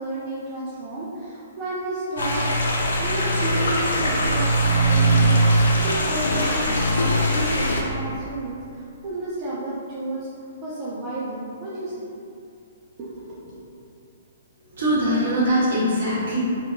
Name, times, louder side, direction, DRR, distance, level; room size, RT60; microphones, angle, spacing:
voice 1, 0.0-2.5 3.0-10.3 10.6-12.1 13.0-13.6, right 1 dB, 30° right, -8 dB, 0.4 m, -31 dB
sound 1, 2.2-7.8, right 1 dB, 65° left, 0.4 m, -21 dB
voice 2, 14.7-16.4, equal, 65° right, -10 dB, 1.2 m, -22 dB
2.5 x 2.5 x 2.5 m, 2.5 s
figure-of-eight pair, 120°, 0 cm